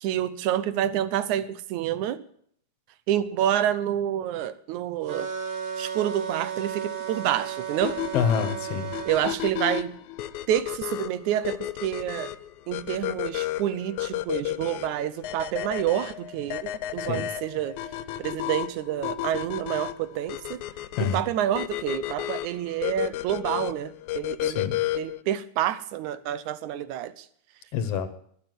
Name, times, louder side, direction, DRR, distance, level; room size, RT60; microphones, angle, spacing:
voice 1, 0.0-2.2 3.1-5.3 5.8-8.0 9.1-10.0 10.5-12.3 12.7-17.8 18.2-20.6 21.0-24.6 25.0-27.3, right 11 dB, 90° right, 15 dB, 2.3 m, -28 dB
sound 1, 5.1-9.2, right 7 dB, 60° right, 3.6 m, -34 dB
sound 2, 7.8-25.2, left 14 dB, 85° left, 2.1 m, -32 dB
voice 2, 8.1-8.9 17.0-17.3 21.0-21.2 24.4-24.8 27.7-28.1, left 7 dB, 65° left, 11 dB, 2.1 m, -27 dB
21.5 x 7.4 x 7.7 m, 0.63 s
omnidirectional pair, 3.3 m